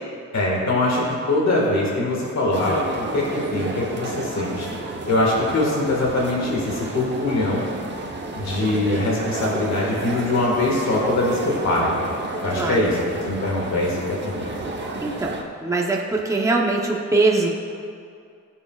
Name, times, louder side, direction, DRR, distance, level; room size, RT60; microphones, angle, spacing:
voice 1, 0.3-4.7 5.1-7.6 8.4-11.9 12.4-13.0 13.2-14.5, left 2 dB, 60° left, -3 dB, 1.9 m, -22 dB
sound 1, 2.5-15.4, right 2 dB, 35° right, 0.9 m, -31 dB
voice 2, 12.5-12.9 15.0-17.5, right 3 dB, 10° right, -2 dB, 0.8 m, -22 dB
19.5 x 7.0 x 2.4 m, 2.3 s
wide cardioid pair, 170°, 31 cm